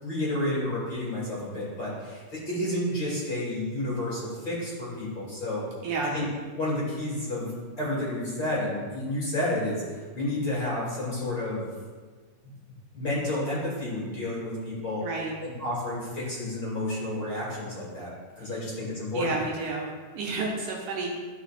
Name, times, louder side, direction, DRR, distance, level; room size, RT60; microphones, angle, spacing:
voice 1, 0.0-5.6 6.1-6.2 6.6-7.5 7.8-11.7 12.9-15.0 15.4-18.1 18.4-19.4, left 1 dB, 35° left, -7 dB, 2.8 m, -30 dB
voice 2, 5.8-6.1 15.0-15.3 19.1-21.1, right 3 dB, 75° right, -2 dB, 2.1 m, -31 dB
13.0 x 5.6 x 2.5 m, 1.5 s
omnidirectional pair, 4.0 m